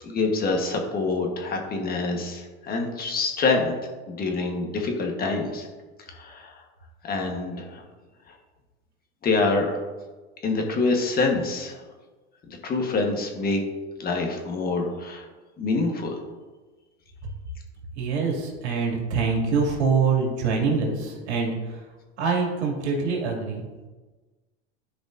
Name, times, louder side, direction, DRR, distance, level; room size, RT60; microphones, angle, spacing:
voice 1, 0.0-3.7 4.1-5.7 6.1-6.5 7.0-7.8 9.2-9.8 10.4-11.8 12.5-13.6 14.0-15.2 15.6-16.2, left 3 dB, 30° left, 2 dB, 1.3 m, -26 dB
voice 2, 17.9-21.9 22.2-23.9, right 5 dB, 80° right, 0 dB, 2.4 m, -25 dB
12.5 x 5.0 x 2.6 m, 1.3 s
supercardioid pair, 120°, 33 cm